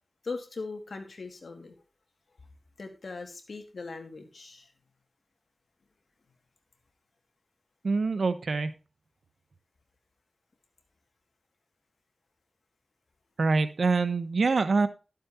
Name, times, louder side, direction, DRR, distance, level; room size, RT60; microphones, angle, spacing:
voice 1, 0.2-1.7 2.8-4.7, left 3 dB, 75° left, 5 dB, 2.3 m, -40 dB
voice 2, 7.8-8.7 13.4-14.9, right 4 dB, 80° right, 11 dB, 1.0 m, -25 dB
12.0 x 7.6 x 4.3 m, 0.31 s
cardioid pair, 50°, 0 cm